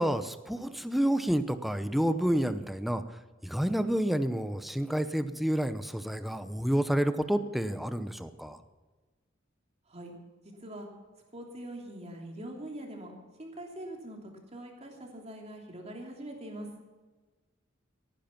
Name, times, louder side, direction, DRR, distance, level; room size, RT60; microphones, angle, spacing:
voice 1, 0.0-3.0 3.4-8.6, right 1 dB, ahead, 10 dB, 0.8 m, -29 dB
voice 2, 10.4-10.9 11.3-13.1 13.4-16.7, right 1 dB, 35° right, 1 dB, 3.1 m, -43 dB
18.0 x 10.5 x 5.9 m, 1.3 s
head